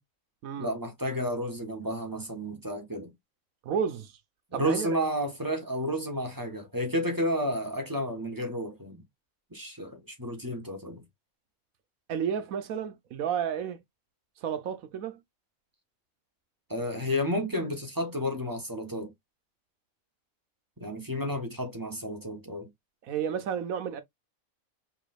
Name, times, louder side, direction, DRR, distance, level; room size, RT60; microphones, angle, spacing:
voice 1, 0.6-3.1 4.5-9.0 9.5-11.0 16.7-19.1 20.8-22.7, equal, 15° right, 1.1 m, -31 dB
voice 2, 3.6-4.1 4.5-4.9 12.1-13.8 14.4-15.2 23.0-24.0, right 7 dB, 80° right, 1.2 m, -31 dB
4.8 x 3.9 x 2.4 m
omnidirectional pair, 1.4 m